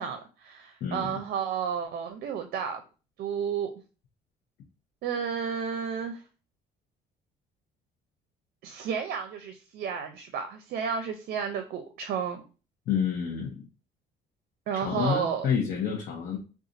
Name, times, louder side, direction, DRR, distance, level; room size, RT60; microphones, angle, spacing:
voice 1, 0.0-2.8 3.2-3.7 5.0-6.2 8.6-12.4 14.7-15.5, right 7 dB, 65° right, 7 dB, 0.5 m, -32 dB
voice 2, 12.9-13.5 14.8-16.4, left 7 dB, 60° left, -1 dB, 0.7 m, -28 dB
2.5 x 2.3 x 3.9 m, 0.35 s
cardioid pair, 110°, 17 cm